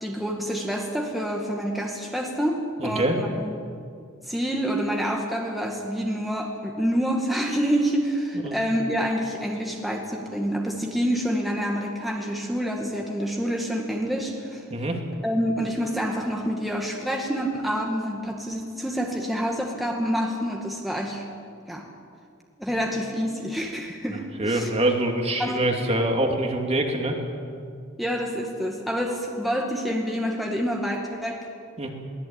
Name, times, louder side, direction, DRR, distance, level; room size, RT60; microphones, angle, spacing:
voice 1, 0.0-3.5 4.3-14.6 15.2-21.2 21.7-21.8 22.6-24.7 25.4-25.6 28.0-31.5, equal, ahead, -1 dB, 2.0 m, -27 dB
voice 2, 2.8-3.2 8.4-8.6 14.7-15.0 22.7-22.8 24.4-27.2 31.8-31.9, right 1 dB, 30° right, 2 dB, 2.6 m, -24 dB
23.0 x 18.0 x 9.0 m, 2.2 s
head